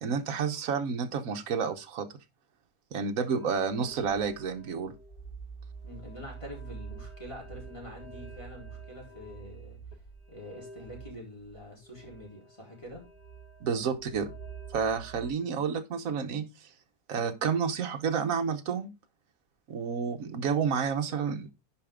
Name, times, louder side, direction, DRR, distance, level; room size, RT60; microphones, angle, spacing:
voice 1, 0.0-2.1 2.9-4.9 13.6-14.3 14.7-16.5 17.1-18.9 19.7-21.5, right 6 dB, 65° right, 1.4 m, -30 dB
sound 1, 3.3-15.3, right 5 dB, 35° left, 2.3 m, -47 dB
voice 2, 5.8-10.0 10.3-13.1, left 1 dB, 20° left, 4.2 m, -46 dB
10.5 x 5.2 x 3.7 m
omnidirectional pair, 1.6 m